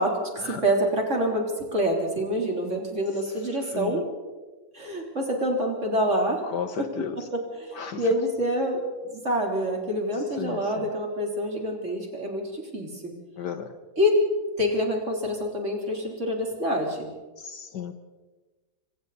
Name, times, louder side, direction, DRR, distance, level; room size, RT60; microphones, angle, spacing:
voice 1, 0.0-4.0 4.7-6.4 6.8-12.9 14.0-14.2 14.6-17.1, equal, 35° right, 0 dB, 4.0 m, -26 dB
voice 2, 6.5-7.1 7.8-8.0 10.4-10.6 13.4-13.7 17.4-17.9, left 7 dB, 60° left, 9 dB, 1.7 m, -33 dB
26.5 x 25.0 x 4.2 m, 1.3 s
omnidirectional pair, 2.2 m